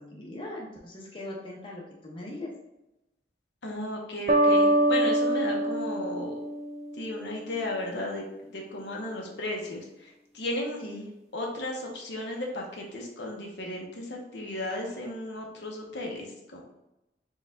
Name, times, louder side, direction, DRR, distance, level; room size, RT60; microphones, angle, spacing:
voice 1, 0.0-2.5 10.8-11.1, left 1 dB, 30° left, -2 dB, 0.8 m, -40 dB
voice 2, 3.6-6.3 7.0-10.8 11.3-16.6, left 1 dB, 70° left, -1 dB, 0.8 m, -35 dB
sound 1, 4.3-7.1, right 1 dB, 35° right, 0.4 m, -24 dB
4.4 x 2.4 x 3.4 m, 0.91 s
head